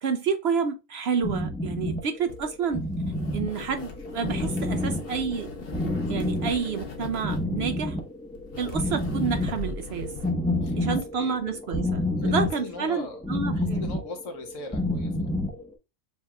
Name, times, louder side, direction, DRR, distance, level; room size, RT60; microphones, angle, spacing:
voice 1, 0.0-2.8 3.3-5.5 6.1-8.0 8.6-10.1 10.7-13.9, right 6 dB, 65° right, 0.7 m, -29 dB
sound 1, 1.2-15.6, left 1 dB, 5° left, 0.7 m, -29 dB
sound 2, 2.3-10.3, left 4 dB, 50° left, 1.0 m, -40 dB
voice 2, 10.4-11.8 12.1-13.2 13.5-15.3, left 3 dB, 70° left, 1.4 m, -41 dB
7.0 x 3.0 x 2.3 m
omnidirectional pair, 1.4 m